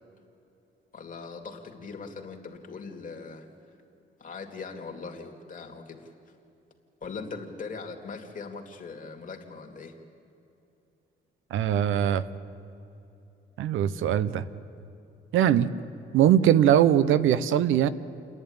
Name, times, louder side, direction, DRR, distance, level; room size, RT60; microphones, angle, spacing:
voice 1, 0.9-3.5 4.2-6.1 7.0-9.9, left 4 dB, 40° left, 2 dB, 2.9 m, -40 dB
voice 2, 11.5-12.2 13.6-14.4 15.3-15.7 16.1-17.9, right 10 dB, 85° right, 15 dB, 0.8 m, -21 dB
29.5 x 11.0 x 9.9 m, 2.9 s
cardioid pair, 90°, 20 cm